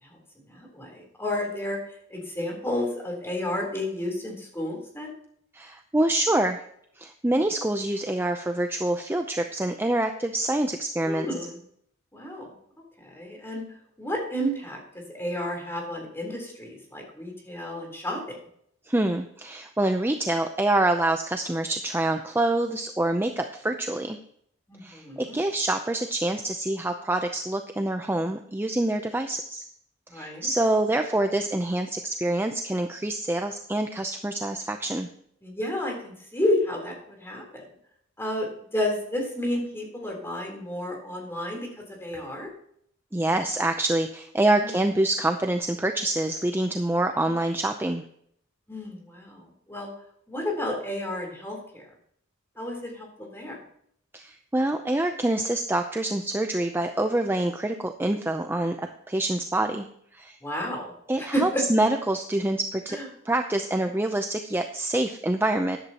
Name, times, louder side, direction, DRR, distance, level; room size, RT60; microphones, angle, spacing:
voice 1, 0.4-1.8 2.1-5.1 11.0-11.6 12.1-12.5 13.0-13.6 14.0-14.8 15.1-18.4 24.7-25.4 30.1-30.5 35.4-37.6 38.2-38.5 38.7-41.7 42.0-42.5 44.6-44.7 48.7-49.9 50.3-51.8 52.6-53.6 60.4-61.6 62.9-63.0, left 1 dB, 10° left, 0 dB, 3.7 m, -31 dB
voice 2, 5.5-6.6 7.0-11.3 18.9-24.2 24.8-29.6 30.1-35.1 43.1-48.0 54.1-59.9 60.1-60.4 61.1-63.0 63.2-65.8, right 1 dB, 10° right, 5 dB, 0.6 m, -26 dB
14.0 x 11.0 x 2.9 m, 0.67 s
head